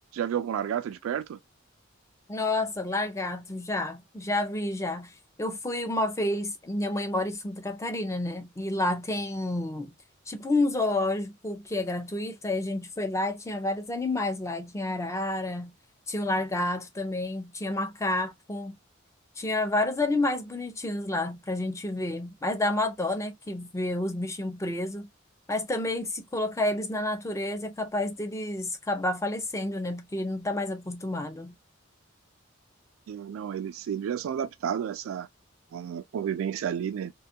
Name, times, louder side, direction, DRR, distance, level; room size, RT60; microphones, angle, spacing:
voice 1, 0.0-1.4 33.1-35.3 35.7-37.1, right 8 dB, 85° right, 0.3 m, -31 dB
voice 2, 2.3-5.1 5.4-9.9 10.3-15.7 16.1-18.8 19.4-25.1 25.5-31.5, left 2 dB, 15° left, 0.5 m, -29 dB
2.5 x 2.3 x 2.6 m
head